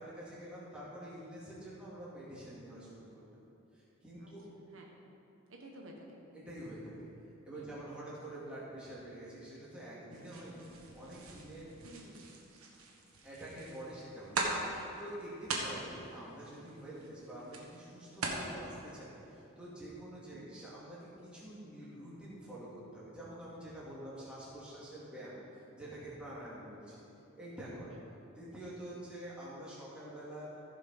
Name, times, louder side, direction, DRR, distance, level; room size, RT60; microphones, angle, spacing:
voice 1, 0.0-3.3 3.7-4.4 6.3-7.1 7.4-11.7 13.2-14.4 14.6-27.0 27.3-27.9 28.3-30.5, right 1 dB, 5° right, -8 dB, 2.3 m, -47 dB
voice 2, 4.2-4.9 5.5-6.2 7.5-7.8 11.8-12.4 15.3-15.4 20.3-20.5 27.9-28.0, right 1 dB, 70° right, -1 dB, 1.2 m, -54 dB
sound 1, 10.1-18.4, right 3 dB, 85° right, 1.4 m, -41 dB
15.0 x 5.2 x 5.4 m, 2.9 s
head